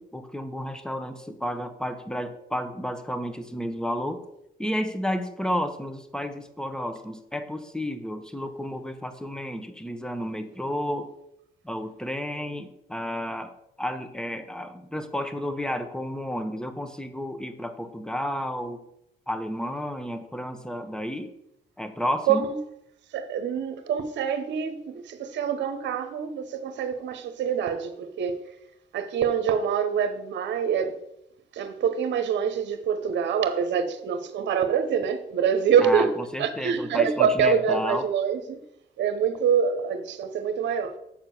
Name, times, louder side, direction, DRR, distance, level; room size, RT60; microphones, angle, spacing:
voice 1, 0.0-4.2 4.6-11.1 11.6-18.8 19.3-21.3 21.8-22.5 35.8-38.1, equal, 5° left, 1.2 m, -32 dB
voice 2, 23.1-28.4 28.9-30.9 31.5-38.6 39.0-40.9, right 7 dB, 75° right, 0.9 m, -25 dB
7.2 x 4.5 x 6.9 m
supercardioid pair, 60°, 19 cm